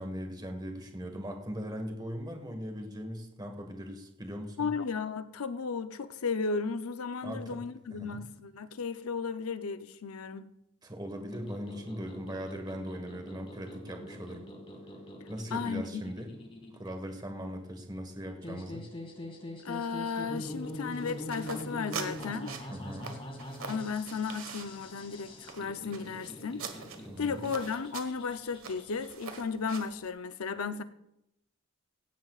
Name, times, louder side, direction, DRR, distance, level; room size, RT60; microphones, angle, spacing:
voice 1, 0.0-4.7 7.2-7.6 7.9-8.2 10.8-14.5 15.3-16.3 16.7-18.9 22.7-23.1 27.0-27.4, equal, 20° right, 1.6 m, -39 dB
voice 2, 4.6-10.5 15.5-16.0 19.6-22.5 23.7-26.6 27.2-30.8, left 5 dB, 80° left, 0.6 m, -34 dB
sound 1, 11.3-29.1, left 1 dB, 25° left, 2.2 m, -44 dB
sound 2, 20.4-30.1, right 6 dB, 70° right, 1.5 m, -45 dB
16.5 x 16.0 x 2.4 m
head